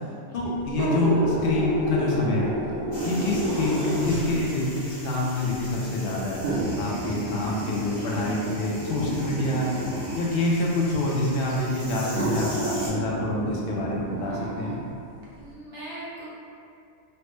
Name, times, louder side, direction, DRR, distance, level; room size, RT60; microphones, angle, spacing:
voice 1, 0.3-2.5 3.0-6.4 6.8-9.7 10.1-14.7, left 2 dB, 60° left, -4 dB, 0.6 m, -26 dB
sound 1, 0.7-4.4 5.3-5.4 6.4-10.4 11.4-11.5 12.1-14.8 15.2-15.3, right 1 dB, 65° right, 0.5 m, -30 dB
voice 2, 0.9-1.4 3.0-3.4 8.1-8.7 15.3-16.3, equal, 50° right, -10 dB, 1.1 m, -40 dB
sound 2, 2.9-12.9, equal, 25° left, 0.9 m, -41 dB
3.2 x 2.0 x 3.0 m, 2.4 s
omnidirectional pair, 1.5 m